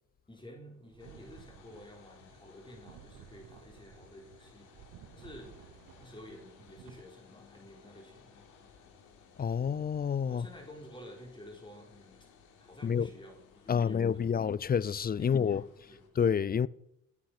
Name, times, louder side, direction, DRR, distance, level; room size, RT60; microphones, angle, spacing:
voice 1, 0.3-4.7 5.1-8.3 10.3-12.3 12.6-14.4 15.2-16.1, equal, 15° left, 4.3 m, -51 dB
sound 1, 0.8-7.0, right 11 dB, 85° right, 1.1 m, -56 dB
sound 2, 1.0-16.1, left 6 dB, 85° left, 3.5 m, -59 dB
voice 2, 9.4-10.5 12.8-13.1 13.7-15.6 16.2-16.7, left 7 dB, 30° left, 0.5 m, -28 dB
17.5 x 8.5 x 6.1 m
cardioid pair, 90°, 30 cm